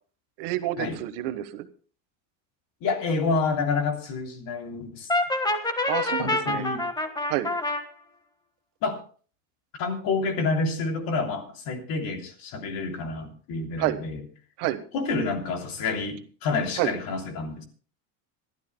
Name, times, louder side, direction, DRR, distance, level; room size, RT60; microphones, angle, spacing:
voice 1, 0.4-1.7 5.7-6.6 7.3-7.5 13.8-14.0 14.6-14.8 16.8-16.9, right 15 dB, 75° right, 11 dB, 1.4 m, -29 dB
voice 2, 2.8-5.1 6.2-6.9 8.8-9.0 9.7-14.2 14.9-17.7, left 4 dB, 60° left, 4 dB, 3.2 m, -28 dB
Brass instrument, 5.1-7.8, left 2 dB, 10° left, 1.5 m, -26 dB
25.5 x 12.5 x 2.2 m, 0.41 s
cardioid pair, 130°, 40 cm